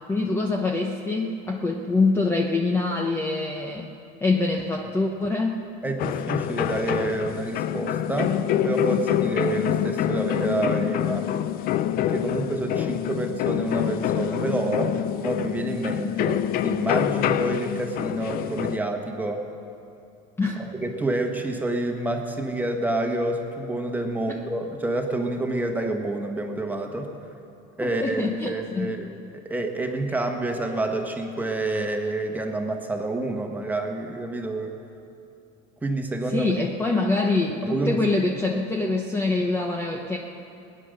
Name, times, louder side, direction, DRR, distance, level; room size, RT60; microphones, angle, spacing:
voice 1, 0.1-3.9 4.2-5.6 12.7-12.9 20.4-20.6 27.8-28.9 36.3-40.2, left 3 dB, 10° left, 1 dB, 0.8 m, -25 dB
voice 2, 5.8-8.4 8.6-11.3 12.1-19.4 20.6-27.1 27.8-34.7 35.8-36.7 37.7-38.0, right 2 dB, 10° right, 3 dB, 1.4 m, -28 dB
sound 1, 6.0-18.8, left 11 dB, 45° left, 0.5 m, -26 dB
21.5 x 9.8 x 6.6 m, 2.8 s
cardioid pair, 145°, 21 cm